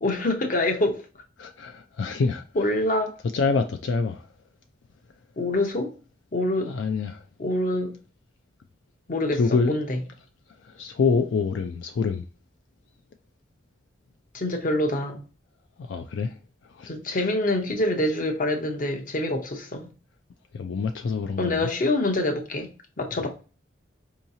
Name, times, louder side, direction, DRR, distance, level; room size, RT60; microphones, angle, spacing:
voice 1, 0.0-1.0 2.5-3.2 5.4-5.9 6.3-6.8 7.4-7.9 9.1-9.9 14.3-15.2 16.9-19.9 21.4-22.7 23.0-23.3, left 1 dB, 45° left, 0.8 m, -25 dB
voice 2, 1.4-2.4 3.3-4.3 6.6-7.2 9.3-9.8 10.6-12.3 15.8-16.4 16.7-17.3 20.5-21.7 23.2-23.3, left 4 dB, 80° left, 0.4 m, -26 dB
4.7 x 2.9 x 2.6 m
head